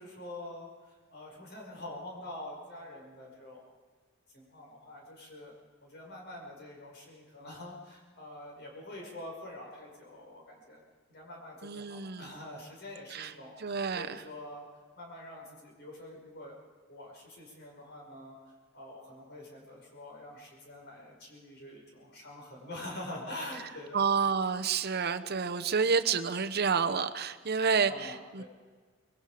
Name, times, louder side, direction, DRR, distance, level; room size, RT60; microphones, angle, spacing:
voice 1, 0.0-3.6 4.3-5.5 5.8-10.8 11.1-14.7 15.0-16.6 16.9-18.4 18.7-24.1 27.9-28.4, left 1 dB, 55° left, -1 dB, 5.7 m, -45 dB
voice 2, 11.6-12.3 13.1-13.3 13.6-14.2 23.9-28.4, right 5 dB, 50° right, 10 dB, 0.9 m, -29 dB
24.5 x 21.5 x 5.0 m, 1.5 s
head